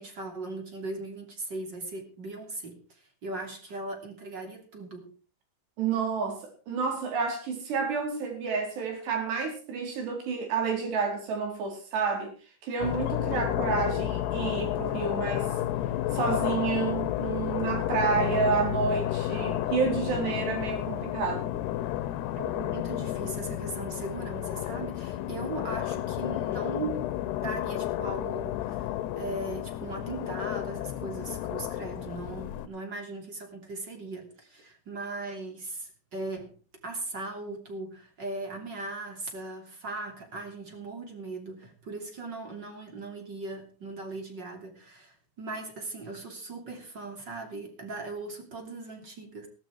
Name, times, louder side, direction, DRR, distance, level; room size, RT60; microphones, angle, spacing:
voice 1, 0.0-5.1 22.4-27.1 27.4-36.5 36.8-49.5, right 2 dB, 30° right, 3.1 m, -38 dB
voice 2, 5.8-12.3 12.6-15.5 16.1-21.5, right 5 dB, 80° right, 6.4 m, -30 dB
sound 1, 12.8-32.7, left 13 dB, 80° left, 2.9 m, -31 dB
17.0 x 12.5 x 4.7 m
omnidirectional pair, 4.8 m